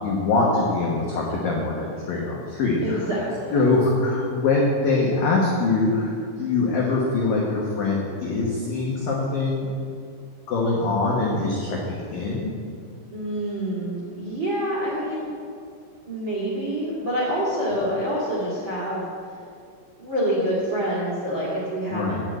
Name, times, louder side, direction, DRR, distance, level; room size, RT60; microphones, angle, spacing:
voice 1, 0.0-3.1 3.5-6.1 6.4-9.7 10.5-12.5 21.9-22.2, left 3 dB, 85° left, -3 dB, 1.9 m, -23 dB
voice 2, 2.8-3.5 13.1-15.3 16.1-19.0 20.0-22.3, equal, 45° right, -7 dB, 1.5 m, -27 dB
9.7 x 7.1 x 7.7 m, 2.4 s
omnidirectional pair, 5.9 m